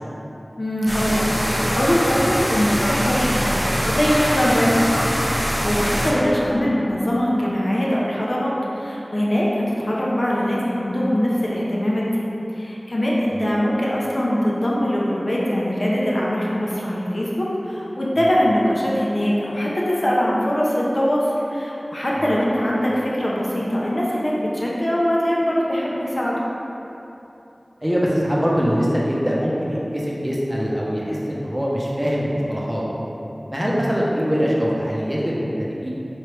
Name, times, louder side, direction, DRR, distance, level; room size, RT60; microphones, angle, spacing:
voice 1, 0.6-5.0 5.4-12.2 12.5-26.4, equal, 50° left, -5 dB, 0.7 m, -22 dB
sound 1, 0.9-6.1, equal, ahead, 1.2 m, -23 dB
voice 2, 27.8-32.8 33.5-35.9, equal, 15° right, -5 dB, 0.8 m, -23 dB
5.0 x 3.2 x 3.2 m, 2.9 s
wide cardioid pair, 45°, 0 cm